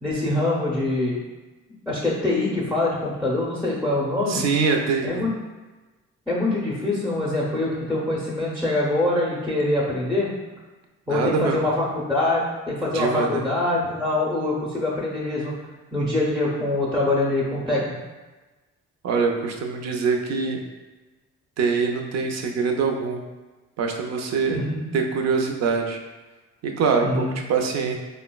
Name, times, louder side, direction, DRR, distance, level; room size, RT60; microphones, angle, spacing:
voice 1, 0.0-1.2 1.9-4.4 5.0-5.3 6.3-10.3 11.1-15.5 15.9-18.0 24.4-24.9 27.0-27.3, left 2 dB, ahead, -5 dB, 0.5 m, -24 dB
voice 2, 4.3-5.2 11.1-11.6 12.9-13.4 19.0-20.6 21.6-23.2 23.8-24.6 24.9-26.0 26.6-28.0, right 5 dB, 60° right, 2 dB, 0.5 m, -24 dB
3.6 x 2.1 x 2.2 m, 1.2 s
cardioid pair, 90°, 30 cm